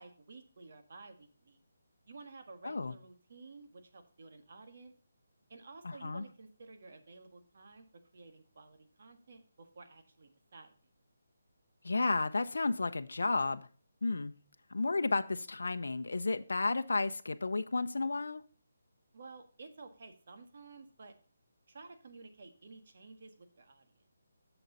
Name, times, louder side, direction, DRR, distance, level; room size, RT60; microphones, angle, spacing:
voice 1, 0.0-1.6 2.1-4.9 5.5-7.8 8.1-10.7 19.1-21.1 21.7-24.0, right 3 dB, 55° right, 7 dB, 1.6 m, -53 dB
voice 2, 5.8-6.2 11.8-13.7 14.0-14.3 14.7-18.4, left 3 dB, 85° left, 9 dB, 0.6 m, -32 dB
7.4 x 7.0 x 4.0 m, 0.41 s
hypercardioid pair, 165°, 0 cm